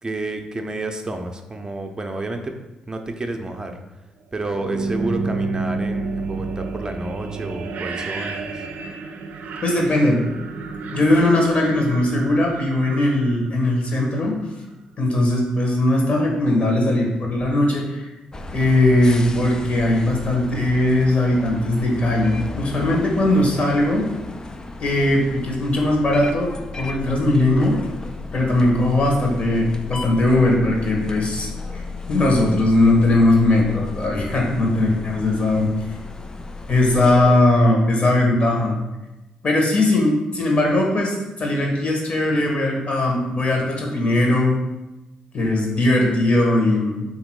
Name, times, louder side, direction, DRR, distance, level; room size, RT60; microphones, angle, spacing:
voice 1, 0.0-2.5 2.9-3.8 4.3-8.7, right 2 dB, 25° right, 4 dB, 0.6 m, -30 dB
sound 1, 4.4-14.2, right 3 dB, 65° right, 0.4 m, -30 dB
voice 2, 9.6-10.2 10.9-14.3 15.0-18.1 18.5-24.0 24.8-26.5 26.8-27.8 28.3-31.8 32.1-35.7 36.7-38.7 39.4-44.6 45.3-47.0, left 1 dB, 50° left, 0 dB, 1.3 m, -19 dB
sound 2, 18.3-37.4, left 2 dB, 25° left, 0.4 m, -34 dB
3.5 x 2.9 x 4.6 m, 1.0 s
hypercardioid pair, 50°, 3 cm